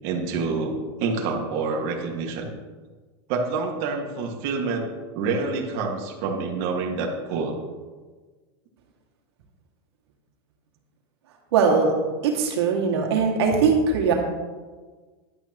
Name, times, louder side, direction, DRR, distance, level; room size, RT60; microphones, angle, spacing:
voice 1, 0.0-2.5 3.3-4.9 5.1-7.6, right 4 dB, 45° right, 1 dB, 2.0 m, -27 dB
voice 2, 11.5-11.9 12.2-14.1, right 5 dB, 85° right, 0 dB, 2.4 m, -20 dB
12.5 x 11.5 x 3.1 m, 1.4 s
supercardioid pair, 165°, 13 cm